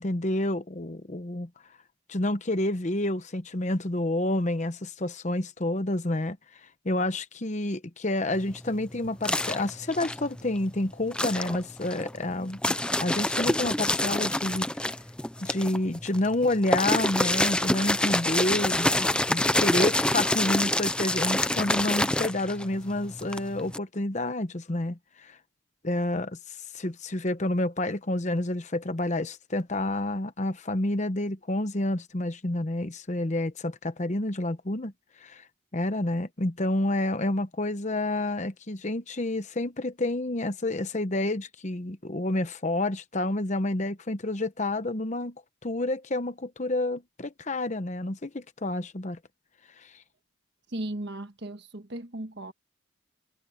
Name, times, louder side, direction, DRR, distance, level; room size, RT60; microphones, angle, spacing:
voice 1, 0.0-1.5 2.1-6.4 6.8-14.7 15.4-25.4 25.8-34.9 35.2-35.4 35.7-45.3 45.6-49.2 49.8-49.9, left 1 dB, 35° left, 0.9 m, -29 dB
sound 1, 8.3-10.7 11.1-23.8, left 1 dB, 5° left, 0.5 m, -27 dB
voice 2, 50.7-52.5, right 1 dB, 55° right, 1.5 m, -36 dB
head